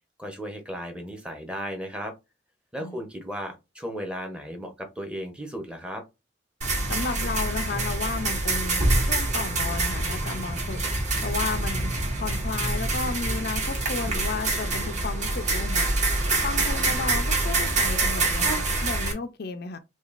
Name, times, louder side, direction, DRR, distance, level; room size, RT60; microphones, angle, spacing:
voice 1, 0.2-2.1 2.7-6.0, equal, 5° right, 0.9 m, -35 dB
sound 1, 6.6-19.1, right 2 dB, 40° right, 1.6 m, -26 dB
voice 2, 6.9-8.8 9.1-10.8 11.2-11.9 12.2-15.9 16.4-19.8, left 4 dB, 55° left, 0.5 m, -33 dB
5.8 x 2.4 x 2.5 m
head